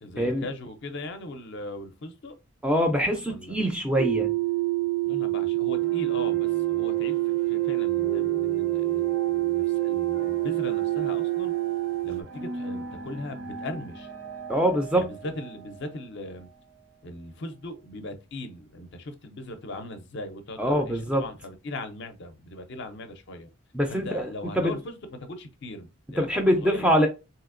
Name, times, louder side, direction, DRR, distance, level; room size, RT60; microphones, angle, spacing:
voice 1, 0.0-2.3 3.3-3.6 5.1-11.5 12.0-14.1 14.9-16.5 17.0-23.5 23.9-26.9, left 1 dB, 50° left, 0.5 m, -39 dB
voice 2, 2.6-4.3 14.5-15.0 20.6-21.2 23.7-24.3 24.6-24.7 26.2-27.1, equal, 5° right, 0.4 m, -24 dB
sound 1, 4.0-12.2, right 21 dB, 70° right, 0.4 m, -26 dB
sound 2, 5.7-17.0, right 2 dB, 85° right, 1.4 m, -41 dB
3.3 x 2.8 x 2.5 m
head